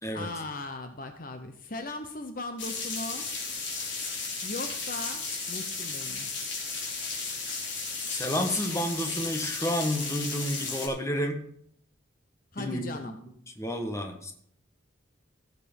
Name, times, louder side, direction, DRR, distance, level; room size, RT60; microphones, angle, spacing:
voice 1, 0.1-3.3 4.4-6.3 12.5-13.2, left 2 dB, 45° left, 7 dB, 0.9 m, -38 dB
sound 1, 2.6-10.9, left 4 dB, 65° left, 3.8 m, -34 dB
voice 2, 8.0-11.4 12.6-13.2 13.6-14.3, equal, 15° left, 4 dB, 1.4 m, -30 dB
16.0 x 6.8 x 5.4 m, 0.65 s
head